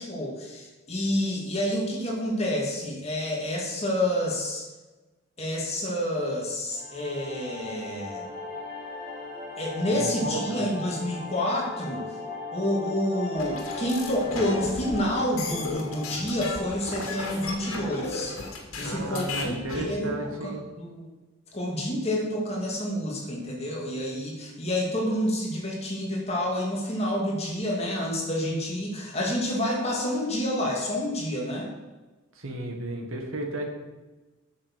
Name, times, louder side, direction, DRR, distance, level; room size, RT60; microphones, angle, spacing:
voice 1, 0.0-4.6 5.4-8.3 9.6-12.0 12.5-18.3 18.8-20.3 20.7-21.1 21.5-31.7, left 1 dB, 30° left, -2 dB, 2.4 m, -28 dB
sound 1, 6.7-17.8, left 3 dB, 40° right, 4.0 m, -38 dB
voice 2, 10.0-10.6 18.8-20.6 32.4-33.6, right 1 dB, 70° right, 3 dB, 1.8 m, -33 dB
sound 2, 13.4-19.9, left 3 dB, 80° left, 2.2 m, -35 dB
8.7 x 6.6 x 7.4 m, 1.2 s
head